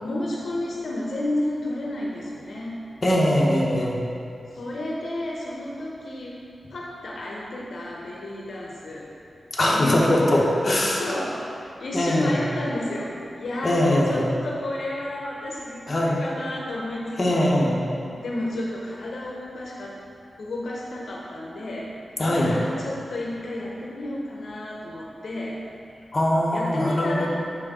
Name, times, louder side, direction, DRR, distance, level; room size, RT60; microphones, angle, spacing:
voice 1, 0.0-2.8 4.5-6.4 6.7-9.1 9.7-10.0 10.3-10.4 10.9-17.7 18.2-20.0 20.4-22.0 22.4-25.6 26.5-27.3, left 1 dB, 80° left, -4 dB, 0.8 m, -31 dB
voice 2, 3.0-4.0 9.5-11.0 11.9-12.4 13.6-14.3 15.9-16.2 17.2-17.8 22.2-22.5 26.1-27.3, left 1 dB, 40° left, -4 dB, 1.2 m, -21 dB
6.4 x 4.8 x 4.4 m, 2.5 s
wide cardioid pair, 85°, 0 cm